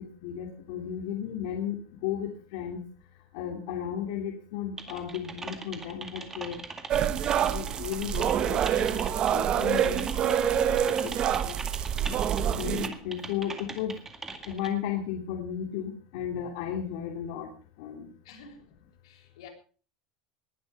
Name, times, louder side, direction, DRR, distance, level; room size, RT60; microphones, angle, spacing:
voice 1, 0.0-2.8 3.3-6.6 6.9-7.1 7.3-9.0 9.3-11.6 12.6-13.9 14.4-17.5 17.8-18.1, left 9 dB, 60° left, 2 dB, 2.8 m, -35 dB
Typing, 4.8-14.7, right 3 dB, 15° right, 2.1 m, -41 dB
sound 1, 6.9-12.9, right 9 dB, 30° right, 0.9 m, -26 dB
voice 2, 18.3-18.6 19.0-19.5, left 5 dB, 90° left, 3 dB, 7.0 m, -49 dB
19.5 x 11.5 x 5.4 m, 0.40 s
supercardioid pair, 165°, 3 cm